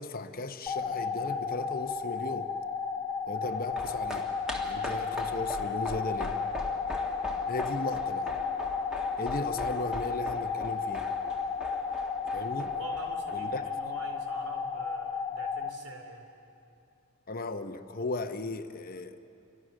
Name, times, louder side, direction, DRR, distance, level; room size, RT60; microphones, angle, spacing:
voice 1, 0.0-2.5 3.3-4.3 4.6-6.4 7.5-8.3 9.2-11.1 12.3-12.7 13.3-13.6 17.3-19.2, left 2 dB, 40° left, 0.9 m, -36 dB
sound 1, 0.7-15.7, left 5 dB, 15° left, 1.2 m, -33 dB
sound 2, 3.4-14.0 14.3-14.4, equal, 5° right, 1.9 m, -42 dB
voice 2, 12.6-16.3, right 1 dB, 80° right, 3.6 m, -46 dB
29.0 x 25.0 x 6.4 m
head